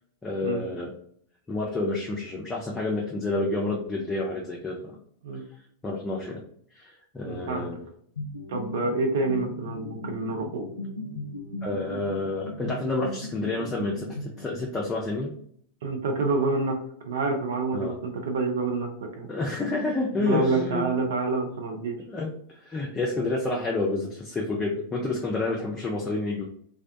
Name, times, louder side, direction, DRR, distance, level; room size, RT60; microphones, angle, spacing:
voice 1, 0.2-0.9 1.5-5.0 5.8-6.4 6.7-7.8 11.6-15.3 17.7-18.0 19.3-20.8 22.1-26.5, left 2 dB, 15° left, -3 dB, 0.5 m, -29 dB
voice 2, 7.2-7.7 8.5-10.7 15.8-16.8 17.0-19.3 20.2-22.0, right 3 dB, 60° right, 3 dB, 0.4 m, -27 dB
sound 1, 8.2-14.9, left 1 dB, 80° left, 0.4 m, -38 dB
2.3 x 2.1 x 2.5 m, 0.64 s
figure-of-eight pair, 90°, 0 cm